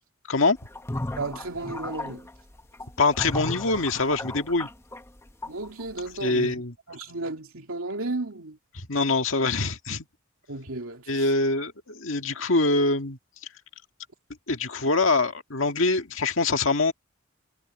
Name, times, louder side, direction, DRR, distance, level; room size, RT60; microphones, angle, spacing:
sound 1, 0.6-5.9, left 1 dB, 15° left, 1.0 m, -35 dB
voice 1, 1.2-2.3 5.5-6.6 6.9-8.6 10.5-11.3, right 2 dB, 80° right, 2.6 m, -34 dB
voice 2, 3.0-4.7 6.2-6.7 8.8-10.1 11.1-13.2 14.5-16.9, left 3 dB, 65° left, 1.9 m, -24 dB
head